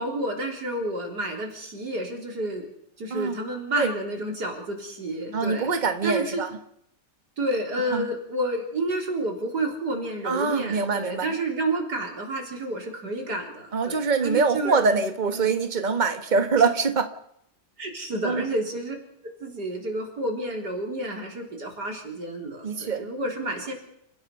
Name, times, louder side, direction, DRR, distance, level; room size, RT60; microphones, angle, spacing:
voice 1, 0.0-2.7 3.0-5.7 6.0-6.4 7.4-14.8 15.3-15.5 17.8-19.0 19.2-23.7, right 1 dB, 70° right, 1 dB, 4.5 m, -30 dB
voice 2, 5.3-6.5 7.9-8.1 10.2-11.3 13.7-17.1 18.2-18.5 22.6-23.1, right 4 dB, 25° right, 7 dB, 1.6 m, -24 dB
30.0 x 15.5 x 5.7 m, 0.74 s
omnidirectional pair, 1.8 m